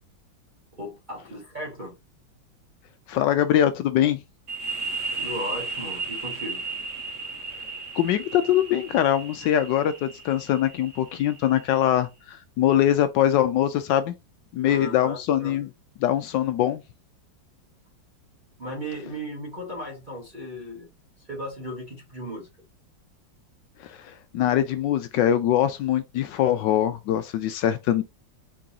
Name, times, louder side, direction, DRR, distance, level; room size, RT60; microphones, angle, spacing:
voice 1, 0.8-2.0 5.2-6.6 14.6-15.6 18.6-20.9 21.3-22.5, equal, 25° right, 1.4 m, -36 dB
voice 2, 3.1-4.2 7.9-14.1 14.5-15.7 16.0-16.8 23.8-28.0, left 11 dB, 75° left, 1.2 m, -23 dB
sound 1, 4.5-11.9, right 3 dB, 45° right, 1.3 m, -35 dB
4.7 x 3.8 x 2.8 m
omnidirectional pair, 2.1 m